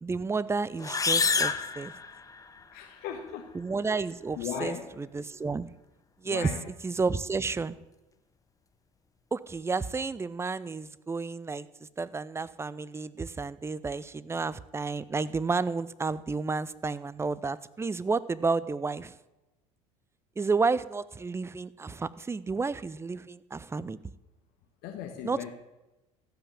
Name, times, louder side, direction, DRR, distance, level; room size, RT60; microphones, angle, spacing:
voice 1, 0.0-1.9 3.5-5.7 6.2-7.8 9.3-11.7 12.0-19.1 20.4-24.0 25.2-25.5, right 4 dB, 15° right, 18 dB, 0.6 m, -31 dB
sound 1, 0.8-2.6, left 4 dB, 20° left, 0.9 m, -28 dB
voice 2, 2.7-3.5 4.4-4.9 6.2-6.6 24.8-25.5, left 8 dB, 60° left, 4 dB, 1.5 m, -37 dB
15.0 x 5.9 x 8.5 m, 1.0 s
hypercardioid pair, 75°, 18 cm